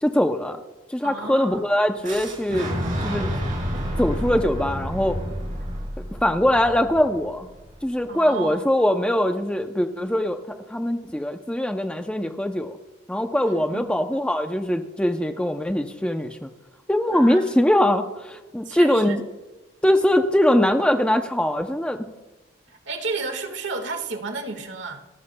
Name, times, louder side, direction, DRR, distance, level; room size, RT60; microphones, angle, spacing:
voice 1, 0.0-0.6 0.9-2.7 3.0-3.3 4.0-5.2 6.1-7.5 7.8-12.8 13.1-16.5 16.9-19.2 19.8-22.1, left 1 dB, 5° left, 0.5 m, -22 dB
voice 2, 1.0-1.6 8.1-8.7 13.5-13.8 17.1-17.4 18.6-19.2 22.7-25.0, right 3 dB, 60° right, 1.6 m, -32 dB
Boom, 2.0-7.9, equal, 40° right, 4.3 m, -30 dB
29.0 x 14.5 x 2.2 m
head